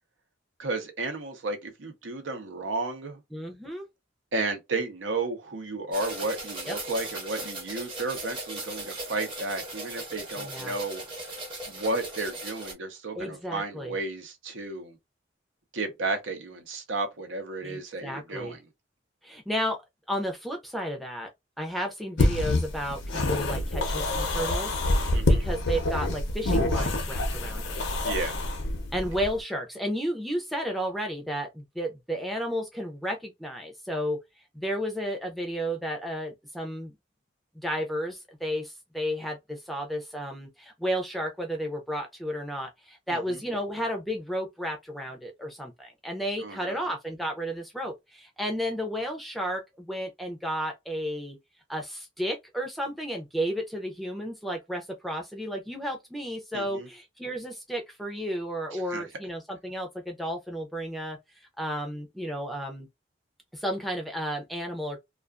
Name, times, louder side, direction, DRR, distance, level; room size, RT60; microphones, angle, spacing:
voice 1, 0.6-3.2 4.3-11.0 11.7-15.0 15.7-18.7 25.1-25.4 28.0-28.4 43.1-43.4 46.4-46.8 56.5-56.9 58.7-59.0, right 3 dB, 85° right, 0.7 m, -33 dB
voice 2, 3.3-3.8 6.7-6.8 10.4-10.7 13.2-13.9 17.6-18.5 19.2-19.8 20.1-21.3 21.6-24.7 25.0-27.8 28.9-34.2 34.5-36.9 37.6-51.4 51.7-61.2 61.6-62.9 63.5-65.0, equal, ahead, 0.4 m, -32 dB
sound 1, 5.9-12.7, right 2 dB, 25° right, 0.7 m, -38 dB
sound 2, 22.2-29.4, left 2 dB, 75° left, 0.6 m, -27 dB
2.4 x 2.3 x 2.3 m
head